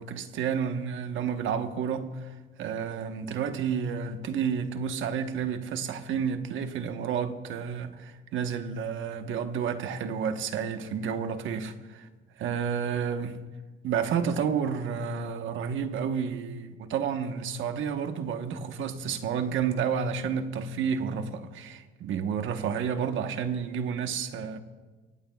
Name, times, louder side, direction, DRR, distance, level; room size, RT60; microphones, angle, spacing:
voice 1, 0.0-12.1 12.4-13.4 13.8-24.6, right 7 dB, 80° right, 1.2 m, -30 dB
24.5 x 18.0 x 2.4 m
cardioid pair, 90°, 20 cm